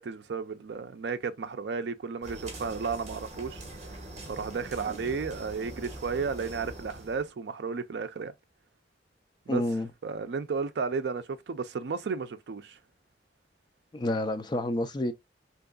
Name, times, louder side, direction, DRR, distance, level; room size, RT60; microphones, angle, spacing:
voice 1, 0.0-3.6 4.3-8.3 9.5-9.6 10.0-12.8, right 5 dB, 65° right, 0.4 m, -33 dB
sound 1, 2.2-7.3, right 1 dB, 40° right, 1.2 m, -43 dB
voice 2, 9.5-9.9 13.9-15.1, left 1 dB, 25° left, 0.4 m, -29 dB
3.5 x 2.9 x 2.3 m
head